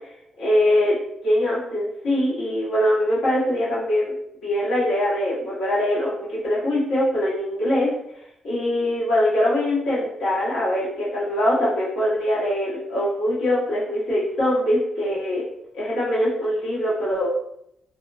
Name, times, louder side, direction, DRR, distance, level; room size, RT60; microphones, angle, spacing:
voice 1, 0.4-1.0 1.2-4.1 4.4-7.9 8.4-15.4 15.7-17.3, left 1 dB, 85° left, -8 dB, 1.1 m, -22 dB
2.1 x 2.1 x 3.4 m, 0.76 s
cardioid pair, 125°, 0 cm